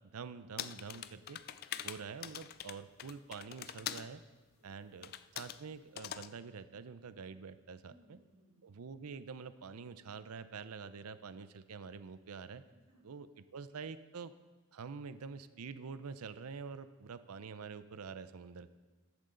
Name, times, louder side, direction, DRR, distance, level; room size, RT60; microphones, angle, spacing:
voice 1, 0.1-1.4 1.8-4.2 4.6-8.2 8.6-12.6 13.0-13.3 13.5-14.3 14.7-18.7, right 5 dB, 90° right, 13 dB, 0.6 m, -46 dB
sound 1, 0.6-4.1 5.0-5.6 6.0-6.3, left 10 dB, 45° left, 0.3 m, -43 dB
voice 2, 7.8-8.7 12.6-13.1, equal, 75° right, -1 dB, 3.3 m, -67 dB
14.0 x 12.0 x 3.8 m, 1.3 s
head